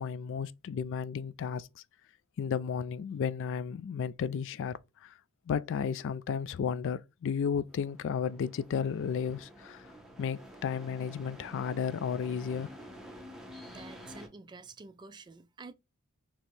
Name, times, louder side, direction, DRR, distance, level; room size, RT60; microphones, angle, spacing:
voice 1, 0.0-1.8 2.4-5.1 5.5-9.9 10.2-12.7, left 6 dB, 60° left, 0.3 m, -33 dB
sound 1, 7.7-14.3, equal, ahead, 0.9 m, -49 dB
voice 2, 13.7-15.7, right 4 dB, 20° right, 0.3 m, -49 dB
4.3 x 3.0 x 3.2 m
head